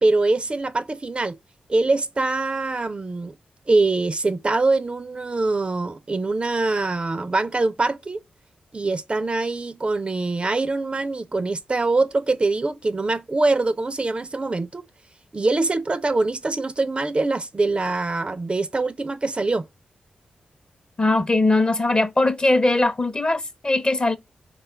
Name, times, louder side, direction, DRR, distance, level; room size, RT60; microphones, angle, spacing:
voice 1, 0.0-1.4 1.7-3.3 3.7-8.2 8.7-14.9 15.3-19.7, right 3 dB, 35° right, 0.4 m, -23 dB
voice 2, 21.0-24.2, left 2 dB, 30° left, 0.6 m, -20 dB
3.6 x 2.3 x 3.1 m
supercardioid pair, 40°, 3 cm